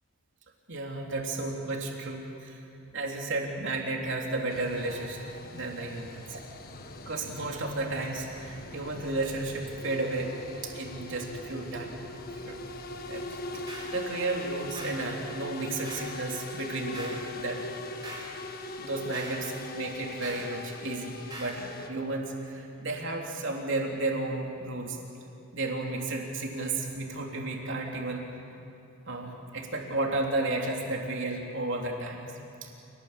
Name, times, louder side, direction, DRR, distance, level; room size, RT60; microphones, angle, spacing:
voice 1, 0.7-2.6 2.9-5.3 5.5-6.4 7.0-10.3 10.6-12.6 13.1-13.6 13.9-17.6 18.3-18.5 18.8-25.0 25.5-28.2 29.1-32.3 32.6-32.7, right 2 dB, 55° right, 0 dB, 3.6 m, -33 dB
sound 1, 4.5-21.9, left 2 dB, 40° left, 1.6 m, -41 dB
sound 2, 13.7-14.0 14.8-15.1 15.8-16.2 16.9-17.3 18.0-18.4 19.1-19.4 20.2-20.5 21.3-21.6, right 2 dB, 20° right, 5.2 m, -42 dB
28.0 x 19.5 x 8.9 m, 2.7 s
head